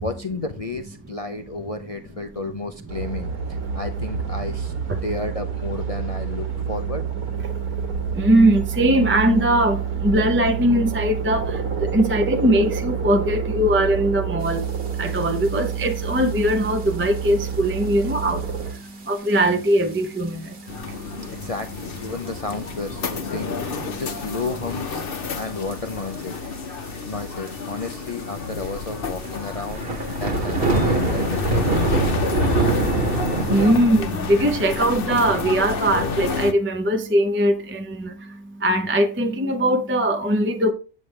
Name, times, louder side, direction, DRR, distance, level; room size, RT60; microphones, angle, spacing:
voice 1, 0.0-3.3 3.7-4.7 5.0-7.0 21.3-25.0 25.3-26.4 27.1-29.8 30.2-32.3, left 3 dB, 70° left, 0.3 m, -32 dB
sound 1, 2.9-18.7, right 6 dB, 90° right, 2.1 m, -28 dB
voice 2, 7.5-21.5 23.9-24.0 32.8-40.7, right 1 dB, 15° right, 0.5 m, -21 dB
sound 2, 15.1-15.2 15.4-15.8 16.5-16.7 17.3-17.4 18.0-18.1 18.4-18.5 18.7-18.8 19.9-20.2 20.6-20.7 21.6-21.7 22.3-22.7 23.1-23.2 23.7-24.4 25.5-25.8 26.1-26.2 26.4-26.5 26.7-26.8 27.5-27.6 27.9-28.0 28.6-33.7, right 2 dB, 40° right, 1.4 m, -23 dB
sound 3, 20.7-36.5, left 5 dB, 45° left, 0.8 m, -30 dB
8.3 x 7.2 x 3.3 m
omnidirectional pair, 1.5 m